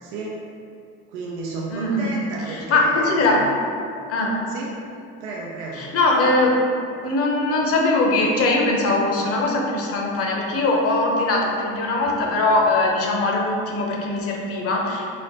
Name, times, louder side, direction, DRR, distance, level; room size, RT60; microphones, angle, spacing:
voice 1, 0.0-0.4 1.1-3.4 4.5-4.7 5.2-5.9, right 3 dB, 80° right, -3 dB, 0.6 m, -32 dB
voice 2, 1.7-2.1 2.5-3.4 4.1-4.3 5.8-6.5 7.0-15.1, left 2 dB, 50° left, -1 dB, 0.8 m, -21 dB
4.2 x 2.1 x 3.9 m, 2.5 s
supercardioid pair, 85°, 31 cm